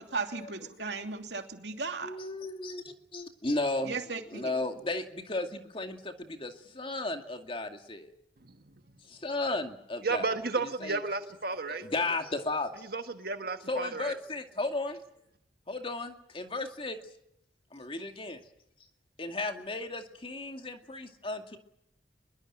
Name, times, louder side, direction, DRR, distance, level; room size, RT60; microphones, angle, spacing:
voice 1, 0.0-2.1 3.8-4.5, right 4 dB, 80° right, 5 dB, 2.8 m, -36 dB
voice 2, 2.0-4.0 4.3-8.1 9.1-10.3 10.8-11.0 11.6-12.9 13.7-15.0 15.7-17.0 17.7-18.4 19.2-21.6, left 2 dB, 30° left, 6 dB, 2.2 m, -34 dB
voice 3, 10.0-11.9 12.9-14.2, right 3 dB, 60° right, 8 dB, 1.5 m, -33 dB
23.5 x 22.0 x 8.9 m, 0.77 s
head